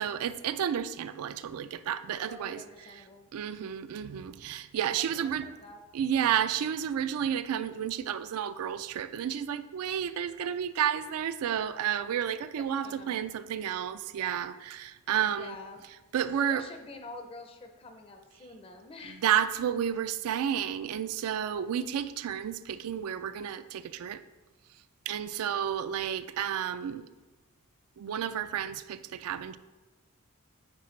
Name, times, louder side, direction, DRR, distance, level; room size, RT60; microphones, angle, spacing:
voice 1, 0.0-2.6 3.3-5.5 5.9-15.6 16.1-16.7 19.1-24.2 25.1-27.1 28.0-29.6, right 9 dB, 80° right, 0.3 m, -31 dB
voice 2, 2.3-3.3 4.9-5.8 12.5-13.2 15.2-15.8 16.4-19.2 25.4-25.7, left 3 dB, 25° left, 0.5 m, -47 dB
9.5 x 4.2 x 3.1 m
head